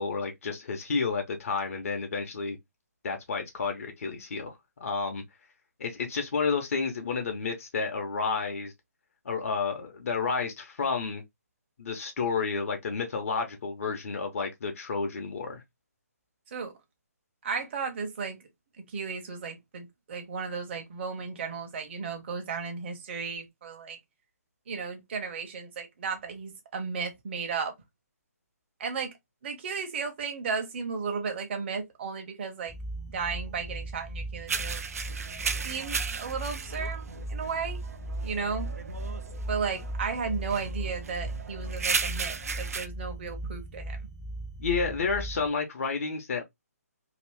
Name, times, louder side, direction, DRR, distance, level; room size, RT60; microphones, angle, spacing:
voice 1, 0.0-2.6 3.0-5.2 5.8-8.7 9.2-11.2 11.8-15.6 44.6-46.4, left 5 dB, 60° left, 0.9 m, -31 dB
voice 2, 17.4-18.4 18.9-24.0 24.7-27.7 28.8-29.1 29.4-32.7 33.1-34.8 35.6-37.8 38.2-38.7 39.5-44.0, right 5 dB, 45° right, 1.0 m, -34 dB
sound 1, 32.7-45.5, right 1 dB, ahead, 0.5 m, -38 dB
sound 2, 34.5-42.9, right 5 dB, 65° right, 0.6 m, -35 dB
2.9 x 2.5 x 3.4 m
hypercardioid pair, 150°, 9 cm